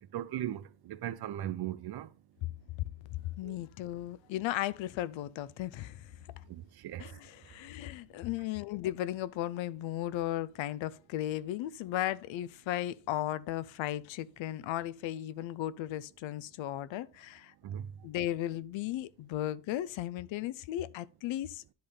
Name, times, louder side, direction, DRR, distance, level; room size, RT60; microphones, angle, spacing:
voice 1, 0.1-2.1 3.4-3.6 6.5-7.1 17.6-17.9, right 12 dB, 60° right, 0.6 m, -38 dB
voice 2, 3.4-6.1 7.0-17.5 18.0-21.6, left 13 dB, 85° left, 0.6 m, -36 dB
10.5 x 3.5 x 5.4 m
cardioid pair, 150°, 44 cm